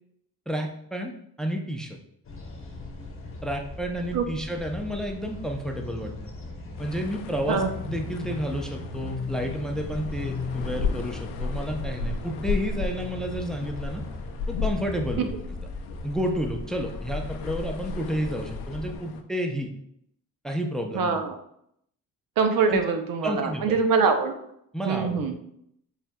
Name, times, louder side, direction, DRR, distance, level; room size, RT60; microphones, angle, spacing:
voice 1, 0.5-1.1 1.4-2.0 3.4-6.1 6.8-14.0 14.5-15.3 16.0-19.7 20.4-21.2 22.7-22.8 23.2-23.8 24.7-25.2, equal, ahead, 3 dB, 0.6 m, -30 dB
sound 1, 2.2-19.0, left 3 dB, 35° left, 0.9 m, -38 dB
sound 2, 6.8-19.2, left 4 dB, 90° left, 0.5 m, -35 dB
voice 2, 20.9-21.3 22.4-24.3 24.9-25.3, right 5 dB, 60° right, 6 dB, 0.6 m, -23 dB
4.5 x 3.4 x 2.3 m, 0.73 s
supercardioid pair, 55°, 38 cm